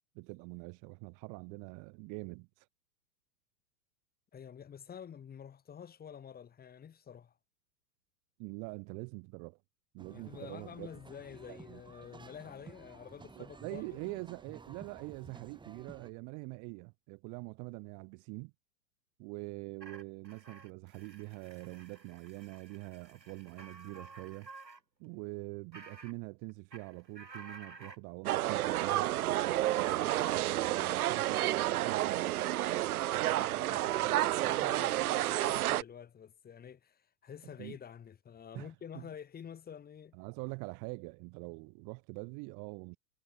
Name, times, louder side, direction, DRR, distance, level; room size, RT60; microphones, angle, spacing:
voice 1, 0.2-2.7 8.4-9.6 9.9-10.9 11.5-11.8 13.4-18.5 19.2-24.5 25.0-29.1 29.7-32.5 37.6-37.8 38.5-38.7 38.9-39.1 40.1-43.0, right 34 dB, 35° right, 2.0 m, -44 dB
voice 2, 4.3-7.3 10.1-14.2 33.4-40.2, left 8 dB, 20° left, 3.7 m, -49 dB
sound 1, 10.0-16.1, right 4 dB, 10° right, 2.8 m, -53 dB
sound 2, 19.8-24.8 25.0-25.1 25.7-26.1 26.5-28.0 29.7-31.0, right 3 dB, 90° right, 2.4 m, -52 dB
sound 3, 28.2-35.8, right 15 dB, 65° right, 0.5 m, -30 dB
figure-of-eight pair, 100°, 49 cm